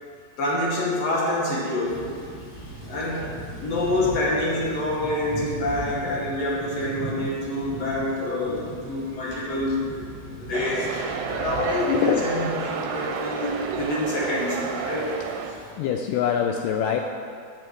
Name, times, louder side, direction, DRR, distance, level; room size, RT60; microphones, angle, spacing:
voice 1, 0.4-2.0 2.9-3.3 3.6-15.1, left 1 dB, 60° left, -4 dB, 1.9 m, -27 dB
Thunder / Rain, 1.8-15.7, right 1 dB, 15° left, 2.5 m, -39 dB
sound 1, 10.5-15.5, right 6 dB, 75° right, 2.3 m, -30 dB
voice 2, 11.8-12.3 15.8-17.0, left 8 dB, 80° left, 3 dB, 1.9 m, -24 dB
8.5 x 6.4 x 7.6 m, 2.2 s
omnidirectional pair, 4.2 m